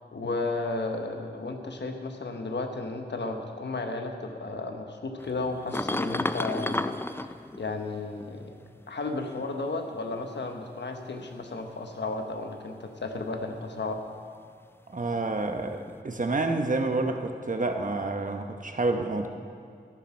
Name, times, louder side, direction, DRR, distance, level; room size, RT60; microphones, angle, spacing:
voice 1, 0.1-7.0 7.6-8.6 8.9-14.0, left 3 dB, 85° left, 4 dB, 1.1 m, -33 dB
sound 1, 5.2-8.5 9.4-10.5 11.2-11.7 15.9-16.0, left 2 dB, 15° left, 0.4 m, -33 dB
voice 2, 14.9-19.3, right 2 dB, 50° right, 5 dB, 1.0 m, -28 dB
13.0 x 12.0 x 4.5 m, 2.2 s
wide cardioid pair, 60°, 18 cm